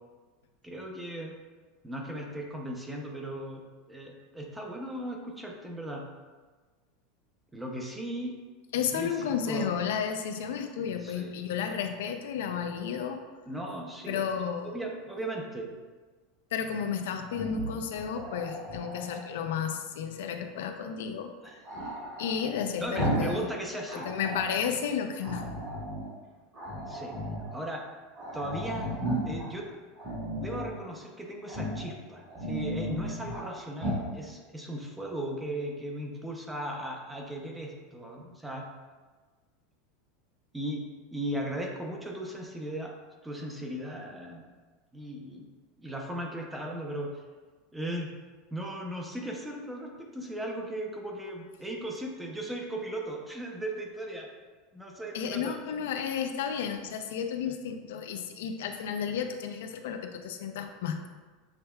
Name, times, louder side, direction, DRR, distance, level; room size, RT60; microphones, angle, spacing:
voice 1, 0.6-1.3 1.8-3.6 3.9-6.0 7.5-8.3 8.9-9.7 11.0-11.3 13.5-14.2 14.6-15.7 21.4-21.6 22.8-24.1 26.9-27.1 27.5-27.8 28.3-28.9 29.3-29.7 30.3-38.7 40.5-40.9 41.1-42.9 43.2-44.4 44.9-45.5 45.8-47.1 47.7-48.1 48.5-54.3 54.7-55.5, right 1 dB, 5° right, 0 dB, 0.5 m, -37 dB
voice 2, 8.7-13.2 14.1-14.8 16.5-21.3 22.2-23.5 23.9-25.5 55.1-61.1, left 7 dB, 90° left, 6 dB, 0.4 m, -32 dB
Growling, 17.3-19.3 21.6-23.4 23.7-24.6 25.2-26.1 26.5-27.5 27.9-28.0 28.2-29.5 30.0-30.7 31.5-31.9 32.2-33.5 33.8-34.1, equal, 35° right, 1.4 m, -35 dB
7.1 x 3.3 x 2.2 m, 1.4 s
supercardioid pair, 165°, 0 cm